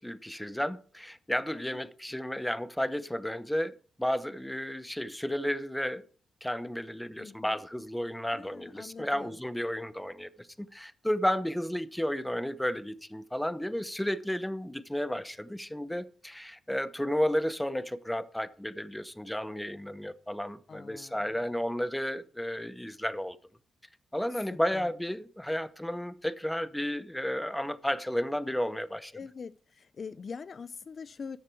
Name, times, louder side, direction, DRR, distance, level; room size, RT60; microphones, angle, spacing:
voice 1, 0.0-6.0 6.4-10.3 10.6-23.4 24.1-29.1, equal, 5° left, 0.8 m, -32 dB
voice 2, 1.5-1.9 7.2-7.6 8.3-9.4 20.7-21.4 24.3-24.9 29.1-31.4, left 5 dB, 45° left, 0.4 m, -44 dB
14.0 x 10.0 x 4.6 m
cardioid pair, 115°, 0 cm